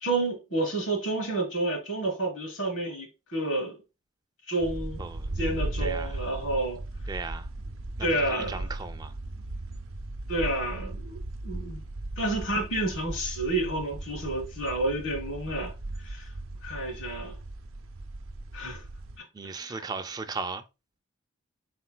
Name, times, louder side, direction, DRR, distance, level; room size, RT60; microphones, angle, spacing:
voice 1, 0.0-3.8 4.5-5.1 5.4-6.8 8.0-8.7 10.3-11.2 11.4-11.8 12.2-15.7 16.0-16.3 16.6-17.3 18.5-18.8 19.4-19.8, right 2 dB, 75° left, 1.9 m, -30 dB
sound 1, 4.6-19.2, right 2 dB, 90° right, 0.6 m, -37 dB
voice 2, 5.0-5.3 5.8-6.2 7.1-7.5 8.0-9.1 19.3-20.6, right 4 dB, 20° right, 0.3 m, -36 dB
4.3 x 4.3 x 2.2 m
head